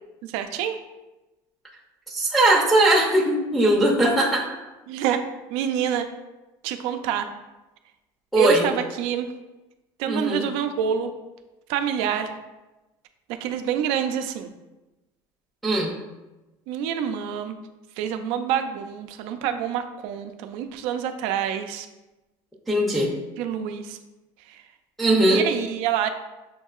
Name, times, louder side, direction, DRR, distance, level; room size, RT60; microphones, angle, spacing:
voice 1, 0.2-0.8 4.9-5.2 5.5-6.1 6.6-7.3 8.4-9.3 10.0-11.1 11.7-12.3 13.3-14.5 16.7-17.6 18.0-21.9 23.4-24.0 25.3-26.1, right 9 dB, 70° right, 7 dB, 0.4 m, -27 dB
voice 2, 2.1-4.5 8.3-8.7 10.1-10.5 15.6-15.9 22.7-23.1 25.0-25.5, right 1 dB, ahead, -6 dB, 0.6 m, -20 dB
6.5 x 2.7 x 2.3 m, 1.1 s
cardioid pair, 165°, 10 cm